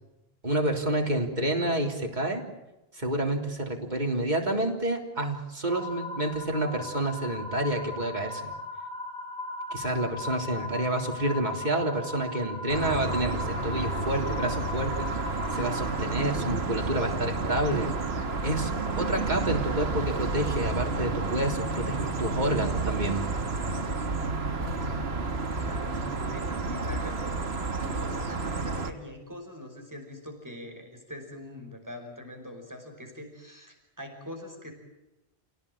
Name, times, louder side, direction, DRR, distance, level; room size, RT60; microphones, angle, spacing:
voice 1, 0.4-2.4 2.9-8.5 9.7-15.1 15.5-17.9 18.4-18.7 19.0-23.2, right 1 dB, 45° right, 1 dB, 3.9 m, -29 dB
sound 1, 5.7-15.8, left 2 dB, 5° left, 6.1 m, -38 dB
voice 2, 10.3-10.7 25.5-34.7, left 1 dB, 15° right, 2 dB, 5.4 m, -43 dB
sound 2, 12.7-28.9, right 3 dB, 80° right, 1.9 m, -30 dB
29.0 x 18.0 x 8.8 m, 0.96 s
omnidirectional pair, 1.0 m